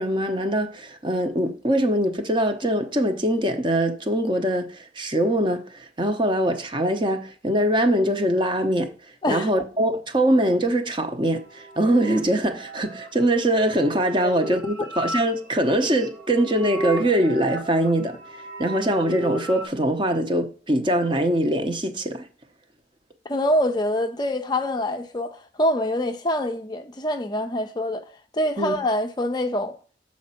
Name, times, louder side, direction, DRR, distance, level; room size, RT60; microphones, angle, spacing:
voice 1, 0.0-8.9 9.3-18.2 18.6-22.3 28.6-28.8, right 1 dB, 25° right, 0.8 m, -23 dB
sound 1, 11.2-19.6, right 1 dB, 80° right, 1.4 m, -35 dB
voice 2, 23.3-28.0 28.3-29.7, left 1 dB, 25° left, 0.5 m, -25 dB
7.1 x 4.3 x 5.7 m
head